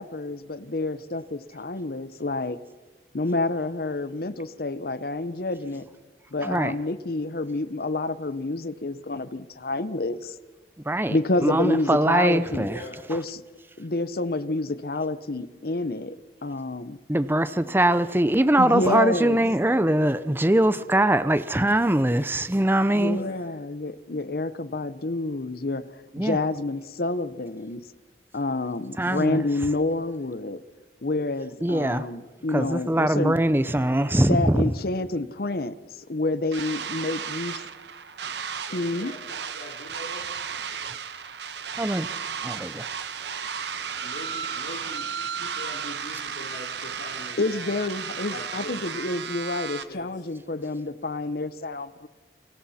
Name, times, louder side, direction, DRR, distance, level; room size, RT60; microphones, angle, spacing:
voice 1, 0.0-2.6 3.1-5.9 6.3-10.4 11.1-12.7 13.1-13.4 13.8-16.2 16.4-17.0 18.6-19.4 22.9-25.8 26.2-27.8 28.3-30.6 31.0-33.4 34.2-35.8 36.1-37.6 38.7-39.1 47.4-52.1, left 2 dB, 55° left, 0.9 m, -28 dB
voice 2, 6.4-6.7 10.9-11.2 11.4-12.8 17.1-23.2 26.1-26.4 29.0-29.4 31.6-32.1 32.5-34.6 41.7-42.1 42.4-42.9, right 1 dB, 10° right, 0.6 m, -22 dB
voice 3, 12.7-13.0 23.1-23.4 38.7-40.3 44.0-45.1 45.3-47.8 48.3-49.1 49.9-50.3, left 1 dB, 70° left, 3.3 m, -42 dB
sound 1, 36.5-49.8, right 7 dB, 70° right, 1.1 m, -34 dB
29.0 x 24.0 x 4.3 m
head